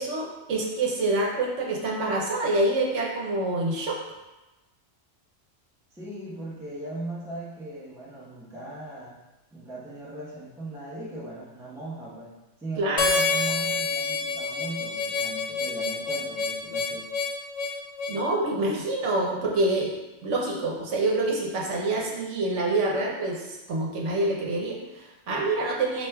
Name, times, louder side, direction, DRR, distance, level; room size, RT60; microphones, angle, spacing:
voice 1, 0.0-4.0 12.8-13.1 18.1-19.9 20.2-26.1, right 2 dB, 75° right, -2 dB, 1.1 m, -26 dB
voice 2, 5.9-9.2 9.5-12.3 12.6-17.1, right 1 dB, 5° right, -7 dB, 0.7 m, -38 dB
Harmonica, 13.0-18.2, left 4 dB, 65° left, 0.8 m, -27 dB
6.0 x 2.5 x 2.2 m, 1.1 s
omnidirectional pair, 1.3 m